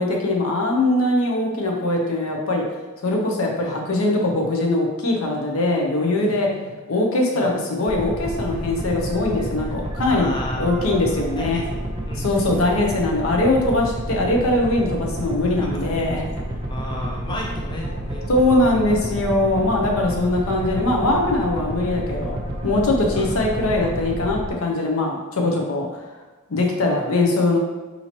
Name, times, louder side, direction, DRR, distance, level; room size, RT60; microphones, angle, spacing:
voice 1, 0.0-2.6 3.0-6.5 6.9-10.3 10.6-11.6 12.2-16.2 18.3-26.0 26.5-27.6, left 2 dB, 70° left, 0 dB, 0.7 m, -21 dB
sound 1, 7.9-24.5, right 1 dB, 25° right, 0.6 m, -30 dB
voice 2, 9.9-12.4 15.5-16.1 16.5-18.3 23.2-23.3, left 1 dB, 20° left, -2 dB, 0.5 m, -34 dB
4.2 x 2.8 x 2.9 m, 1.2 s
head